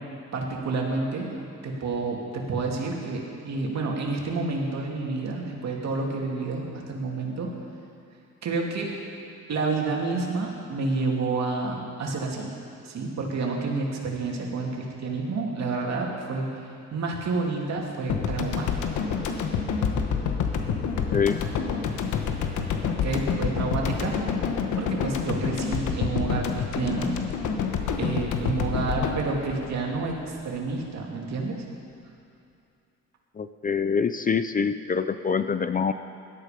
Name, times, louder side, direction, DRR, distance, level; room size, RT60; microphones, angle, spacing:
voice 1, 0.3-1.3 1.6-7.5 8.4-8.9 9.5-12.5 12.8-16.5 16.9-18.7 22.2-22.3 23.0-24.1 24.8-27.1 28.0-31.6, right 3 dB, 60° right, -1 dB, 2.8 m, -29 dB
sound 1, 18.1-30.6, left 6 dB, 80° left, 1.3 m, -28 dB
voice 2, 33.4-35.9, left 6 dB, 30° left, 11 dB, 0.5 m, -25 dB
17.5 x 12.5 x 5.2 m, 2.6 s
cardioid pair, 90°, 30 cm